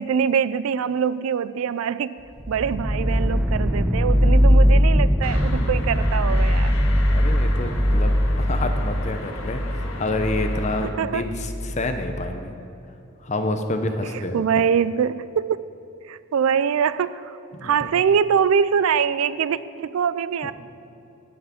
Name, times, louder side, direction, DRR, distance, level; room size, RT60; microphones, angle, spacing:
voice 1, 0.0-6.7 11.0-11.2 14.0-15.6 16.1-20.5, right 7 dB, 75° right, 16 dB, 0.3 m, -23 dB
sound 1, 2.4-12.3, equal, 5° right, 0.5 m, -21 dB
sound 2, 5.2-10.9, left 2 dB, 80° left, 1.4 m, -37 dB
voice 2, 6.7-12.6 13.2-14.7 17.5-17.9 20.4-20.5, left 2 dB, 30° left, 6 dB, 0.8 m, -28 dB
11.5 x 5.8 x 8.5 m, 2.9 s
head